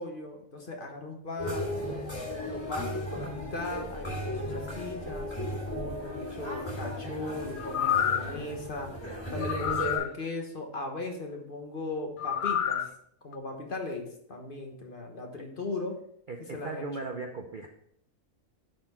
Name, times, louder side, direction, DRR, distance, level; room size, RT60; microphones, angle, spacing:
voice 1, 0.0-1.8 2.5-9.0 9.3-12.9 13.2-16.0 16.5-16.8, left 2 dB, 40° left, 2 dB, 1.3 m, -38 dB
sound 1, 1.4-10.0, equal, 20° left, 2.5 m, -36 dB
sound 2, 7.6-8.4 9.4-10.1 12.2-12.9 13.3-13.4, left 9 dB, 90° left, 0.4 m, -28 dB
voice 2, 16.3-17.7, right 3 dB, 50° right, 3 dB, 0.6 m, -37 dB
10.0 x 4.3 x 4.2 m, 0.71 s
omnidirectional pair, 1.4 m